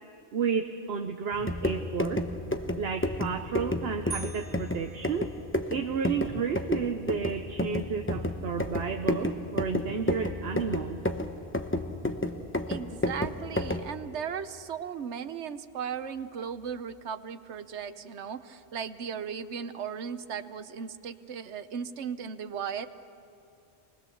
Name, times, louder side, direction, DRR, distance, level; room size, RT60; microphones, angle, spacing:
voice 1, 0.3-2.3 2.8-5.3 5.7-11.0, right 6 dB, 65° right, 5 dB, 1.0 m, -32 dB
sound 1, 1.3-13.9, left 1 dB, 10° left, 0.8 m, -31 dB
sound 2, 4.1-5.9, right 5 dB, 20° right, 0.4 m, -44 dB
voice 2, 12.7-22.9, right 7 dB, 90° right, 11 dB, 1.1 m, -37 dB
24.5 x 19.5 x 7.0 m, 2.6 s
omnidirectional pair, 1.1 m